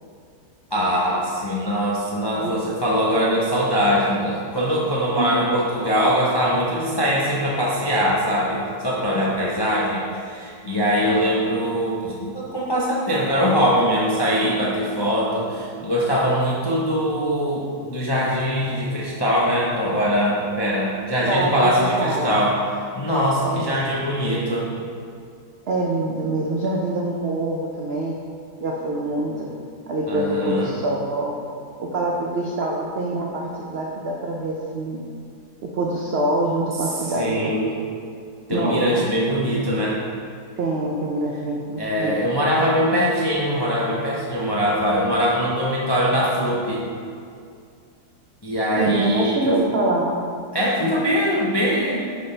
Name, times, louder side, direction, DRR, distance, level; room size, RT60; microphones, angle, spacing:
voice 1, 0.7-22.6 23.0-24.7 30.1-30.7 37.1-37.7 38.5-40.0 41.8-46.8 48.4-49.5 50.5-52.1, equal, 35° left, -6 dB, 0.4 m, -22 dB
voice 2, 21.3-22.3 23.4-23.9 25.7-28.2 28.6-29.5 29.9-31.3 31.8-35.0 35.7-37.5 38.5-39.0 40.6-42.1 48.8-50.1, right 2 dB, 65° right, -2 dB, 0.6 m, -25 dB
9.0 x 4.2 x 3.3 m, 2.3 s
omnidirectional pair, 1.8 m